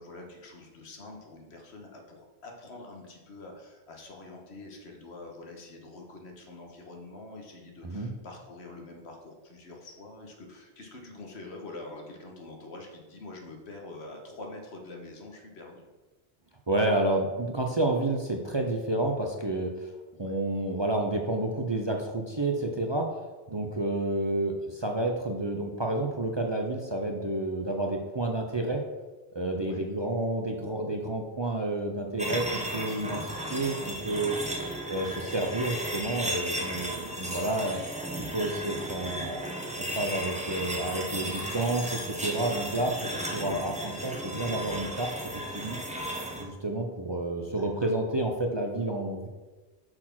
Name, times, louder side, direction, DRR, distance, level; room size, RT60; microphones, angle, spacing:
voice 1, 0.0-15.8 20.1-20.4 29.5-29.9 47.5-47.7, left 2 dB, 80° left, 2 dB, 1.5 m, -45 dB
voice 2, 16.7-19.9 20.2-23.1 23.5-28.8 29.3-34.4 34.9-37.8 38.3-39.5 39.8-45.1 45.5-45.8 46.4-49.3, right 2 dB, 30° right, 2 dB, 0.6 m, -30 dB
sound 1, 32.2-46.4, right 1 dB, 5° right, 0.8 m, -35 dB
6.1 x 4.3 x 5.8 m, 1.2 s
omnidirectional pair, 1.1 m